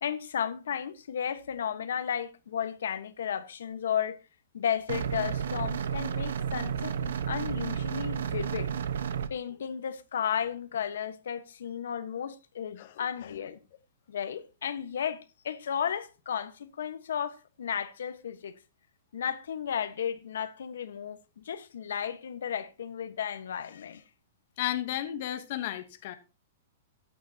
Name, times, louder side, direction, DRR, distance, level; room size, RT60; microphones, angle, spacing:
voice 1, 0.0-4.2 4.5-8.7 9.3-13.6 14.1-18.5 19.1-24.0, left 8 dB, 80° left, 1.2 m, -34 dB
sound 1, 4.9-9.3, right 8 dB, 80° right, 1.0 m, -32 dB
voice 2, 24.6-26.1, left 13 dB, 45° left, 1.0 m, -33 dB
14.0 x 9.4 x 2.9 m
hypercardioid pair, 170°, 0 cm